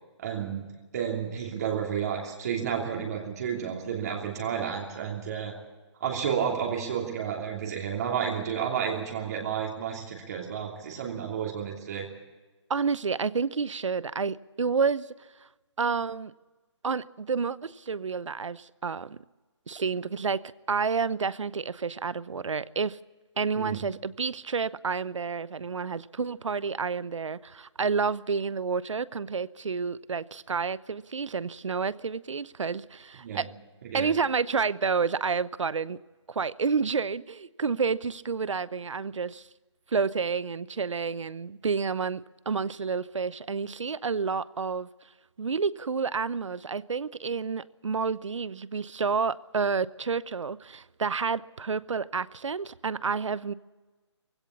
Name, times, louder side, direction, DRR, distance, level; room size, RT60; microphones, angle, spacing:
voice 1, 0.2-0.7 0.9-5.5 6.0-12.1 23.5-23.8 33.2-33.4 33.8-34.1, right 8 dB, 35° right, 3.0 m, -31 dB
voice 2, 12.7-15.1 15.8-16.3 16.8-19.2 19.7-20.4 20.7-23.0 23.4-33.5 33.9-36.0 36.3-39.5 39.9-44.9 45.4-53.5, right 5 dB, 80° right, 0.8 m, -29 dB
19.5 x 16.5 x 8.4 m
hypercardioid pair, 165°, 16 cm